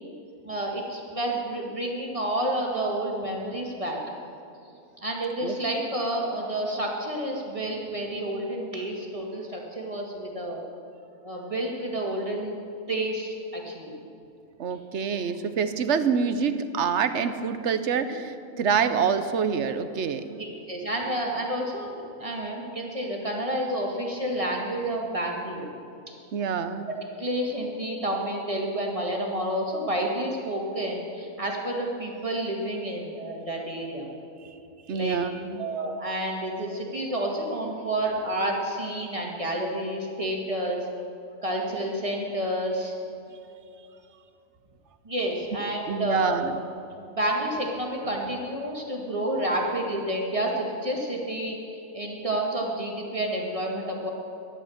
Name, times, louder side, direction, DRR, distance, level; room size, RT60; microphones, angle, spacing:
voice 1, 0.4-4.0 5.0-10.6 11.2-12.5 12.9-13.9 20.4-25.7 26.9-34.1 34.9-35.2 35.6-40.9 41.4-42.9 45.0-46.4 47.1-51.6 51.9-54.1, right 1 dB, 25° right, -1 dB, 2.1 m, -29 dB
voice 2, 14.6-20.4 26.3-26.9 34.9-35.7 45.9-46.6, right 6 dB, 60° right, 10 dB, 1.0 m, -26 dB
13.5 x 11.0 x 7.2 m, 2.7 s
omnidirectional pair, 1.4 m